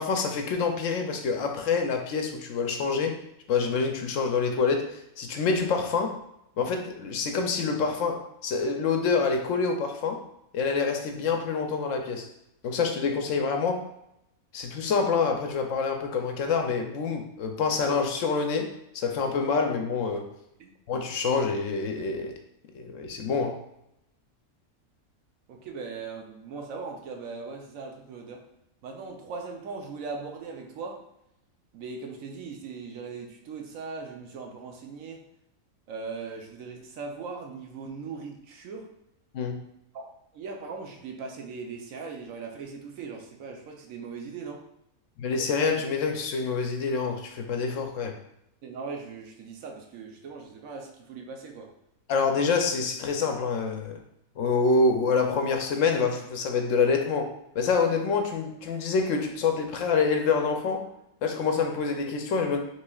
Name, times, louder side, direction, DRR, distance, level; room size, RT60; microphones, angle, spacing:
voice 1, 0.0-3.2 3.5-6.2 6.6-10.2 10.5-12.3 12.6-13.8 14.5-20.3 20.9-22.3 22.7-23.6 39.3-39.6 45.2-48.1 52.1-54.0 54.4-60.9 61.2-62.6, left 4 dB, 65° left, 4 dB, 0.9 m, -26 dB
voice 2, 25.5-28.4 28.8-31.0 31.7-35.2 35.9-38.9 39.9-40.1 40.3-44.6 48.6-51.7, right 4 dB, 70° right, 2 dB, 1.1 m, -39 dB
6.3 x 3.1 x 2.3 m, 0.81 s
omnidirectional pair, 1.5 m